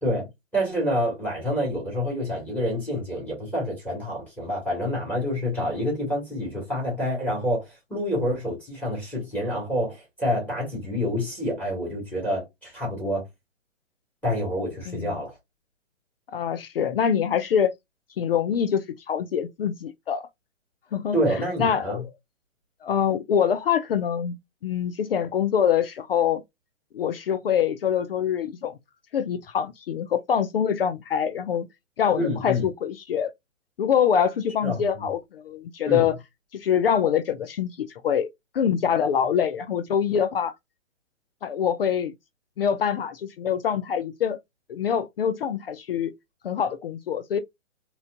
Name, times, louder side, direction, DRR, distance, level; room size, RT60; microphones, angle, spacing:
voice 1, 0.0-13.2 14.2-15.4 21.1-22.0 32.2-32.7 34.6-35.0 35.9-36.1, equal, 5° left, 2.0 m, -27 dB
voice 2, 14.9-15.2 16.3-17.7 18.2-20.3 20.9-22.1 22.8-24.3 24.6-26.4 26.9-28.7 29.1-31.7 32.0-33.3 33.8-36.1 36.5-38.3 38.5-40.5 41.4-42.1 42.6-44.4 44.7-46.1 46.4-47.4, left 8 dB, 50° left, 0.5 m, -25 dB
4.0 x 3.0 x 2.4 m
figure-of-eight pair, 135°, 38 cm